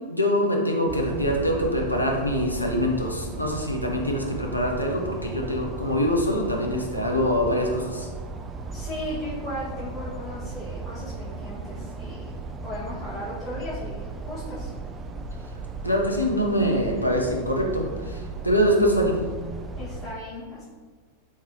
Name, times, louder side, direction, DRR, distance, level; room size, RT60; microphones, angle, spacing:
voice 1, 0.1-8.1 15.8-19.2, equal, 85° left, 0 dB, 0.6 m, -24 dB
sound 1, 0.9-20.1, right 3 dB, 25° right, 0.3 m, -36 dB
voice 2, 8.7-12.4 12.6-14.7 19.7-20.6, left 1 dB, 20° left, -11 dB, 1.4 m, -36 dB
4.9 x 3.3 x 2.8 m, 1.4 s
figure-of-eight pair, 90°, 0 cm